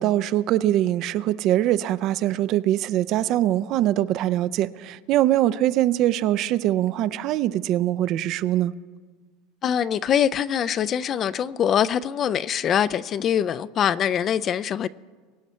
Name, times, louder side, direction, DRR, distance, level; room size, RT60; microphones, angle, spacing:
voice 1, 0.0-8.7, right 13 dB, 45° right, 0.4 m, -22 dB
voice 2, 9.6-14.9, left 9 dB, 30° left, 0.3 m, -23 dB
23.0 x 9.0 x 4.3 m
supercardioid pair, 155°, 0 cm